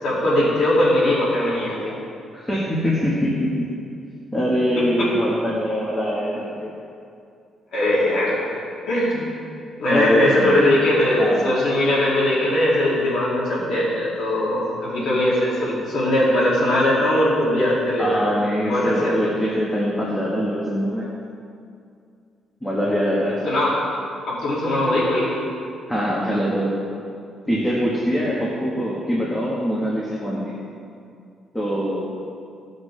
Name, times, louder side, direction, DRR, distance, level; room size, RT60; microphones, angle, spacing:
voice 1, 0.0-1.9 4.7-5.1 7.7-8.4 8.9-9.3 9.8-18.2 18.6-19.3 23.4-23.8 24.3-25.3, left 1 dB, 65° left, -8 dB, 2.4 m, -20 dB
voice 2, 2.3-3.7 4.3-6.7 9.9-10.6 11.2-11.6 18.0-21.1 22.6-23.4 25.9-26.7 27.5-30.5 31.5-32.1, equal, 5° left, -6 dB, 1.2 m, -23 dB
15.0 x 6.4 x 3.2 m, 2.4 s
cardioid pair, 175°, 0 cm